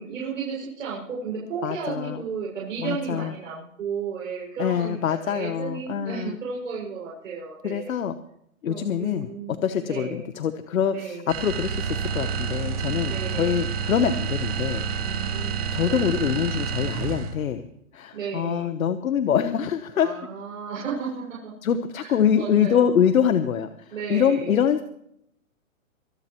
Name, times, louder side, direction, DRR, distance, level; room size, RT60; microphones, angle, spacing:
voice 1, 0.0-7.9 8.6-10.2 10.9-11.3 13.0-13.6 15.0-16.0 18.1-18.7 19.9-21.5 22.0-23.0 23.9-24.6, right 6 dB, 65° right, -5 dB, 6.5 m, -34 dB
voice 2, 1.6-2.2 2.8-3.3 4.6-6.4 7.6-8.1 8.6-15.3 15.7-17.6 17.9-20.1 21.6-24.8, left 8 dB, 75° left, 10 dB, 1.1 m, -25 dB
sound 1, 11.3-17.4, right 6 dB, 25° right, 1.3 m, -29 dB
24.5 x 12.0 x 3.1 m, 0.73 s
hypercardioid pair, 170°, 42 cm